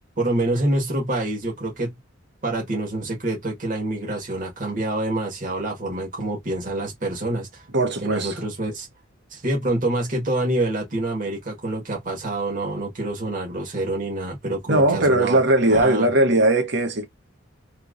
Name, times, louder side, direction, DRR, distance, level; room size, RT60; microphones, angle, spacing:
voice 1, 0.2-1.9 2.4-7.6 8.0-8.9 9.3-15.4 15.7-16.1, right 2 dB, 40° right, 1.5 m, -26 dB
voice 2, 7.7-8.4 14.7-17.1, right 1 dB, 55° right, 1.2 m, -19 dB
3.3 x 2.9 x 2.5 m
head